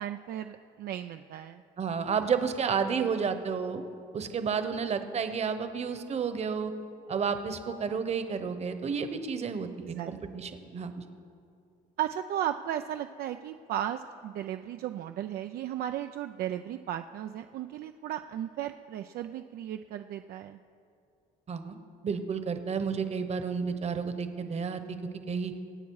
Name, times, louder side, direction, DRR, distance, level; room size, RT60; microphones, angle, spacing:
voice 1, 0.0-1.6 9.8-10.1 12.0-20.6, right 11 dB, 65° right, 7 dB, 0.5 m, -35 dB
voice 2, 1.8-3.8 4.1-6.7 7.1-11.0 21.5-21.8 22.0-25.0 25.3-25.5, right 6 dB, 40° right, 9 dB, 1.1 m, -31 dB
23.5 x 8.4 x 4.8 m, 2.5 s
cardioid pair, 110°, 17 cm